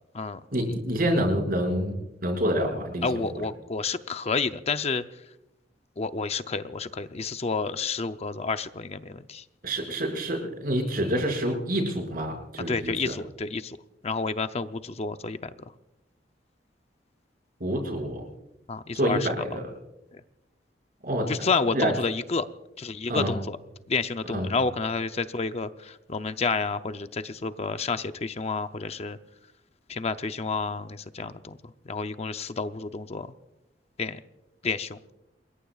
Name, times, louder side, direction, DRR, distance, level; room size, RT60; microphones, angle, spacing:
voice 1, 0.5-1.9 2.2-3.4 9.6-13.1 17.6-18.2 18.9-19.6 21.0-21.3 21.7-21.9 23.1-23.3 24.3-24.5, equal, 55° right, 1 dB, 6.0 m, -27 dB
voice 2, 3.0-5.0 6.0-9.4 12.7-13.8 14.0-15.5 18.7-19.3 20.1-20.2 21.3-22.5 22.8-23.6 23.9-29.2 29.9-31.6 31.9-33.3 34.0-34.2 34.6-35.0, left 4 dB, 35° left, 10 dB, 0.6 m, -30 dB
28.0 x 21.5 x 2.4 m, 0.92 s
head